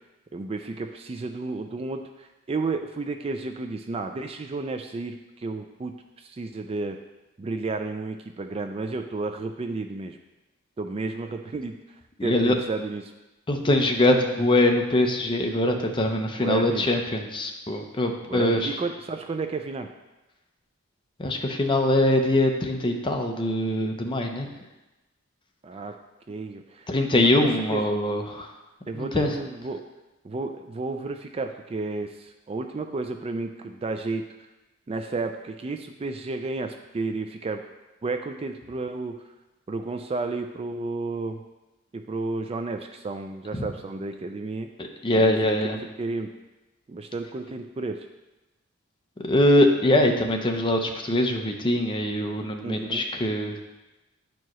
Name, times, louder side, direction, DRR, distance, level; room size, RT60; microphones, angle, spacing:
voice 1, 0.3-7.0 7.4-10.2 10.8-11.8 12.2-13.1 16.4-16.9 18.3-19.9 25.6-25.9 26.3-27.9 28.9-29.8 30.2-34.2 34.9-37.6 38.0-39.2 39.7-41.4 41.9-44.7 45.1-46.3 46.9-48.1 52.6-53.0, right 3 dB, 25° right, 6 dB, 0.3 m, -32 dB
voice 2, 12.2-12.5 13.5-18.8 21.2-24.5 26.9-28.5 28.9-29.3 43.5-43.6 44.8-45.8 49.2-53.6, left 1 dB, 25° left, 3 dB, 0.7 m, -23 dB
10.5 x 4.6 x 3.0 m, 1.0 s
head